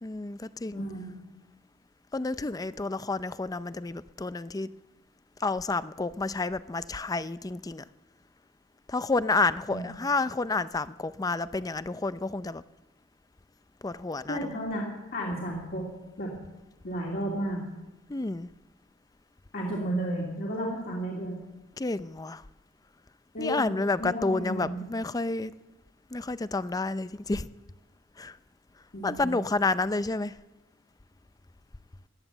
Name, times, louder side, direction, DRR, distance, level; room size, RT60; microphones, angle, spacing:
voice 1, 0.0-0.9 2.1-4.7 5.4-7.8 8.9-12.6 13.8-14.4 18.1-18.5 21.8-22.4 23.4-25.5 26.1-27.5 28.2-28.3 29.0-30.3, left 3 dB, 20° left, 15 dB, 0.4 m, -30 dB
voice 2, 0.7-1.1 9.7-9.9 10.2-10.3 14.3-15.9 16.2-16.3 16.8-17.6 19.5-21.4 23.3-23.7 24.0-24.8 28.9-29.4, right 1 dB, 55° left, -3 dB, 2.8 m, -33 dB
17.0 x 11.0 x 7.2 m, 1.0 s
head